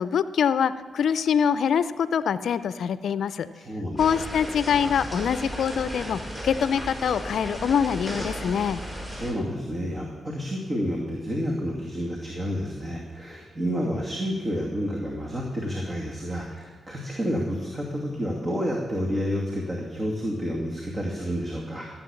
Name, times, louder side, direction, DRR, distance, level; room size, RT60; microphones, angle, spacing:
voice 1, 0.0-3.5 4.0-8.8, left 7 dB, 70° left, 15 dB, 0.5 m, -24 dB
voice 2, 3.7-4.0 9.0-21.9, equal, 40° right, -2 dB, 2.5 m, -30 dB
sound 1, 4.0-9.3, equal, 15° right, 5.2 m, -35 dB
15.5 x 8.3 x 7.1 m, 1.5 s
hypercardioid pair, 45°, 0 cm